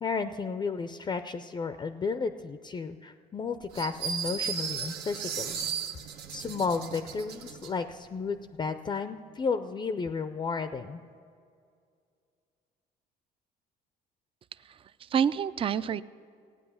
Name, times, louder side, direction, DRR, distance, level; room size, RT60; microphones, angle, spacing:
voice 1, 0.0-5.6 6.3-11.0, left 5 dB, 25° left, 10 dB, 0.5 m, -33 dB
sound 1, 3.7-7.7, right 7 dB, 85° right, 1.0 m, -35 dB
voice 2, 14.6-16.0, right 8 dB, 30° right, 15 dB, 0.4 m, -28 dB
15.0 x 9.4 x 7.0 m, 2.3 s
cardioid pair, 110°, 17 cm